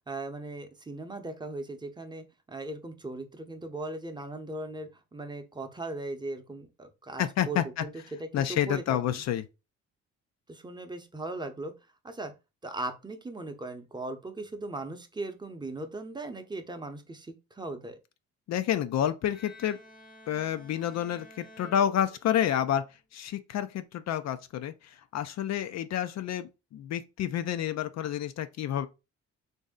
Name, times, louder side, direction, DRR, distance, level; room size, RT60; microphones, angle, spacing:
voice 1, 0.1-7.9 8.2-9.2 10.5-11.7 12.0-12.3 12.6-18.0, right 2 dB, 15° right, 0.7 m, -38 dB
voice 2, 7.2-7.8 8.3-9.5 18.5-19.8 20.3-22.8 23.1-28.9, left 10 dB, 60° left, 0.4 m, -29 dB
Bowed string instrument, 19.3-22.6, left 2 dB, 30° left, 0.7 m, -52 dB
3.1 x 2.7 x 3.6 m
cardioid pair, 90°, 30 cm